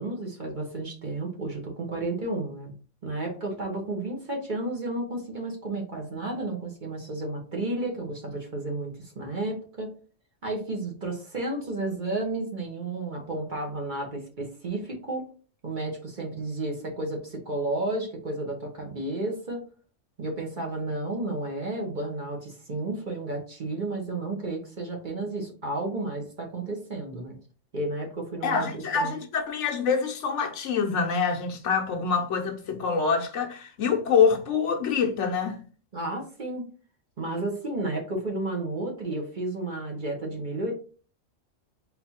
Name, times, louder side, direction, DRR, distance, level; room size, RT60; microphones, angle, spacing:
voice 1, 0.0-2.7 3.0-9.9 10.4-15.2 15.6-19.6 20.2-27.4 27.7-29.1 35.9-36.7 37.2-40.7, right 2 dB, 40° right, 1.0 m, -32 dB
voice 2, 28.4-35.6, left 6 dB, 65° left, 1.0 m, -25 dB
4.1 x 2.7 x 4.2 m
omnidirectional pair, 1.4 m